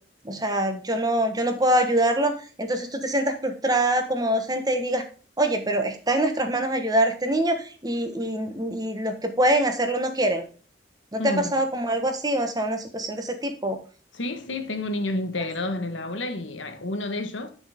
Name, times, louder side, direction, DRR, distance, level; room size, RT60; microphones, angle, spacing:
voice 1, 0.2-2.3 2.6-5.0 5.4-10.4 11.1-13.8, right 1 dB, 20° right, 1.3 m, -24 dB
voice 2, 11.2-11.5 14.1-17.5, left 2 dB, 90° left, 1.5 m, -30 dB
9.8 x 6.2 x 3.6 m
head